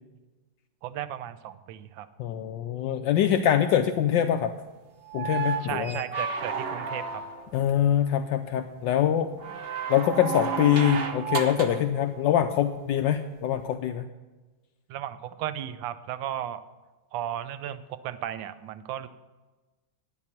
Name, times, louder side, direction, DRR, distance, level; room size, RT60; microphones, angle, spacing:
voice 1, 0.8-2.1 5.6-7.2 14.9-16.6 17.1-19.1, right 11 dB, 75° right, 12 dB, 1.4 m, -35 dB
voice 2, 2.2-4.5 5.1-6.0 7.5-9.3 9.9-14.0, left 10 dB, 75° left, 6 dB, 1.2 m, -24 dB
sound 1, 5.0-7.6 9.4-11.9 13.5-13.6, right 5 dB, 50° right, 0.7 m, -32 dB
11.0 x 9.2 x 5.9 m, 1.2 s
omnidirectional pair, 2.2 m